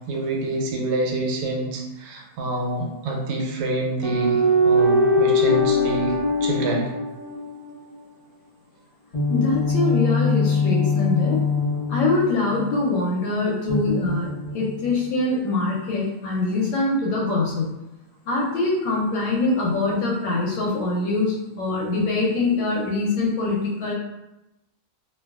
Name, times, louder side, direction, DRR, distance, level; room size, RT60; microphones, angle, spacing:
voice 1, 0.1-6.1 6.4-6.9, right 2 dB, 85° right, 0 dB, 1.5 m, -27 dB
sound 1, 4.0-7.7 9.1-12.9 13.7-14.9, left 2 dB, 45° left, 0.9 m, -22 dB
voice 2, 9.3-11.5 11.9-17.8 18.3-23.9, left 3 dB, 75° left, -4 dB, 1.2 m, -23 dB
3.0 x 2.8 x 2.3 m, 0.94 s
omnidirectional pair, 2.4 m